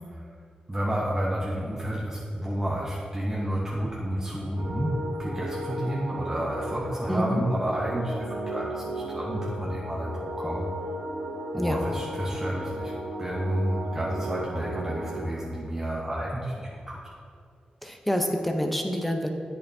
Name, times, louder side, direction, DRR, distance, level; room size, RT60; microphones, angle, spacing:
voice 1, 0.7-10.7 11.5-12.9 13.2-17.1, right 1 dB, 20° right, -4 dB, 1.0 m, -30 dB
sound 1, 4.6-15.2, right 1 dB, 90° right, 1.2 m, -35 dB
voice 2, 7.1-7.4 11.5-11.8 17.8-19.3, equal, 5° left, 3 dB, 0.8 m, -27 dB
8.4 x 6.9 x 2.7 m, 2.2 s
cardioid pair, 60°, 3 cm